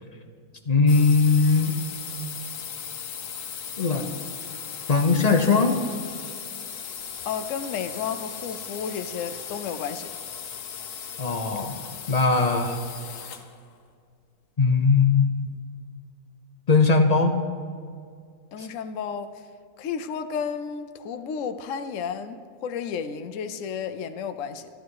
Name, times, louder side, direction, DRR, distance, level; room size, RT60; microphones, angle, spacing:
voice 1, 0.7-1.7 3.8-4.1 4.9-5.8 11.2-11.7 12.1-12.8 14.6-15.4 16.7-17.4 18.6-18.7, left 4 dB, 35° left, 5 dB, 0.7 m, -20 dB
sound 1, 0.9-13.6, left 7 dB, 85° left, 1.4 m, -37 dB
voice 2, 7.2-10.1 18.5-19.5 19.8-24.7, left 7 dB, 65° left, 9 dB, 1.0 m, -32 dB
12.5 x 12.5 x 4.7 m, 2.2 s
omnidirectional pair, 1.6 m